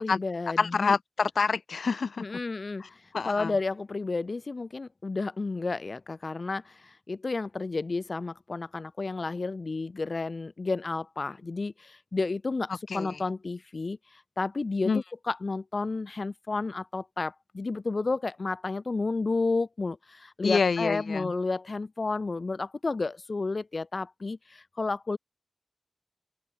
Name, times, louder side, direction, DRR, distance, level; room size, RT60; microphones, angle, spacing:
voice 1, 0.0-1.0 2.2-2.8 3.2-25.2, left 3 dB, 55° left, 6.3 m, -31 dB
voice 2, 0.6-2.2 3.1-3.5 12.9-13.1 14.9-15.0 20.4-21.3, left 5 dB, 90° left, 2.5 m, -26 dB
open air
wide cardioid pair, 80°, 0 cm